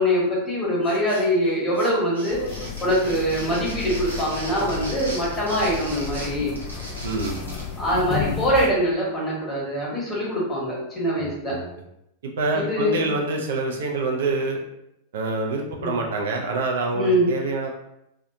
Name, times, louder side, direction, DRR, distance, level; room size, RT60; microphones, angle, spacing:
voice 1, 0.0-2.5 2.8-6.5 7.8-11.5 12.5-13.2 15.8-15.9 16.9-17.3, equal, 15° left, -6 dB, 1.2 m, -23 dB
sound 1, 0.8-1.5 1.7-7.7, right 1 dB, 90° left, 0.8 m, -37 dB
sound 2, 2.3-8.7, left 7 dB, 40° left, 0.4 m, -33 dB
voice 2, 7.0-7.4 11.2-11.6 12.2-14.6 15.1-17.7, right 3 dB, 60° right, 1 dB, 0.4 m, -26 dB
2.6 x 2.4 x 2.5 m, 0.82 s
figure-of-eight pair, 90°, 0 cm